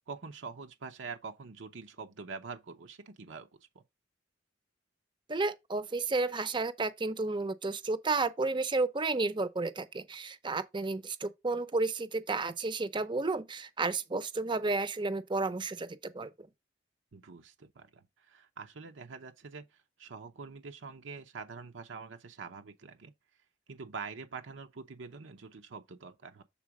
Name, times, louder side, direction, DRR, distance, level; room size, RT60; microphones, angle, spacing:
voice 1, 0.0-3.5 3.7-3.8 17.1-19.6 20.0-23.1 23.7-26.4, right 4 dB, 85° right, 0.7 m, -45 dB
voice 2, 5.3-16.3, right 3 dB, 25° right, 0.6 m, -32 dB
7.4 x 3.8 x 4.8 m
head